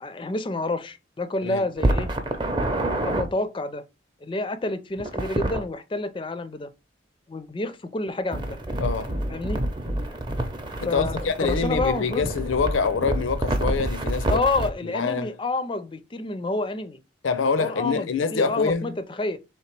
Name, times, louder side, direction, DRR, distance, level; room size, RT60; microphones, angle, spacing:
voice 1, 0.0-2.1 2.9-3.8 4.2-6.7 7.3-8.6 9.3-9.6 10.9-12.3 14.3-17.0 17.6-19.4, left 2 dB, 25° left, 0.4 m, -29 dB
sound 1, 1.8-3.3 5.0-5.6 8.3-14.7, right 1 dB, 25° right, 0.6 m, -27 dB
voice 2, 8.8-9.2 10.8-14.4 14.8-15.3 17.2-18.9, left 5 dB, 85° left, 0.5 m, -25 dB
3.5 x 2.9 x 4.4 m
head